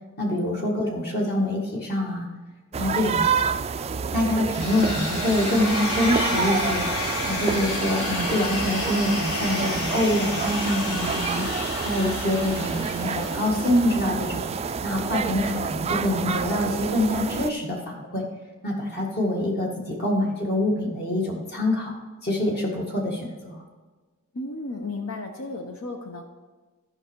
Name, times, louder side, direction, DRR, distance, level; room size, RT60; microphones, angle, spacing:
voice 1, 0.2-2.3 2.8-3.3 4.1-6.9 7.3-11.5 11.8-14.4 14.8-18.3 18.6-23.6, left 1 dB, 45° left, -1 dB, 1.8 m, -25 dB
sound 1, 2.7-17.5, right 6 dB, 30° right, 0.3 m, -29 dB
sound 2, 4.5-14.5, left 1 dB, 90° left, 1.7 m, -31 dB
voice 2, 24.3-26.2, left 2 dB, 70° left, 4 dB, 0.9 m, -34 dB
14.0 x 5.3 x 4.6 m, 1.3 s
head